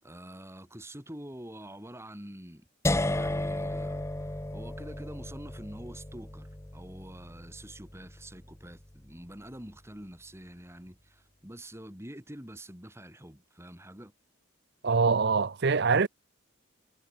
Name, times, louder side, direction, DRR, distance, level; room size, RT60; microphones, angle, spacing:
voice 1, 0.0-2.7 3.1-14.1, right 1 dB, 15° right, 4.0 m, -46 dB
sound 1, 2.8-8.8, left 1 dB, 15° left, 0.9 m, -34 dB
voice 2, 14.8-16.1, right 4 dB, 55° right, 0.7 m, -24 dB
head